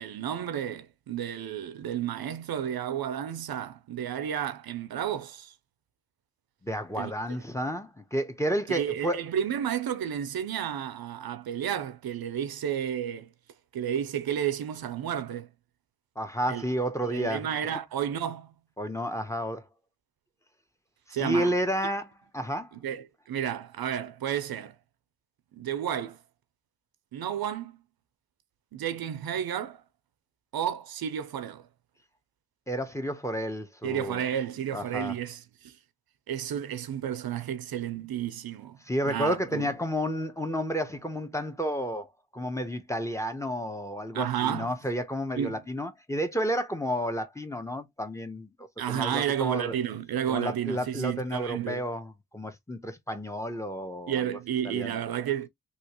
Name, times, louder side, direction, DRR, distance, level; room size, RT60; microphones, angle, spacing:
voice 1, 0.0-5.5 7.0-7.1 8.7-13.3 13.7-15.5 16.5-16.6 17.0-18.5 21.1-21.5 22.8-24.8 25.5-26.2 27.1-27.8 28.7-29.8 30.5-31.7 33.8-35.8 36.3-38.8 39.0-39.7 44.1-44.7 45.4-45.6 48.8-51.8 54.1-55.5, right 9 dB, 75° right, 0.6 m, -32 dB
voice 2, 6.6-9.2 16.2-17.5 18.8-19.6 21.2-22.7 32.7-34.2 34.7-35.2 38.8-49.8 50.3-54.4 54.6-55.0, equal, 10° left, 0.9 m, -31 dB
3.0 x 2.9 x 2.9 m
cardioid pair, 65°, 37 cm